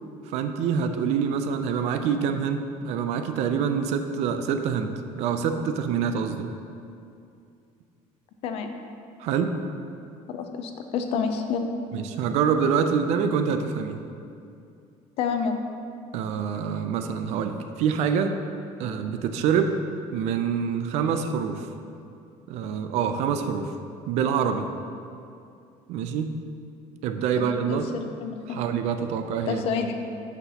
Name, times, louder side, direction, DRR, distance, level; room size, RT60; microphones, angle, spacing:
voice 1, 0.3-6.5 9.2-9.6 11.9-14.0 16.1-18.4 18.8-19.7 20.1-21.7 22.5-23.7 24.1-24.7 25.9-26.3 27.0-27.9 28.5-29.6, right 7 dB, 60° right, 8 dB, 0.4 m, -26 dB
voice 2, 10.3-11.7 15.2-15.6 27.4-28.6 29.5-29.9, left 6 dB, 50° left, 6 dB, 0.5 m, -29 dB
8.1 x 5.7 x 2.8 m, 2.5 s
cardioid pair, 175°, 13 cm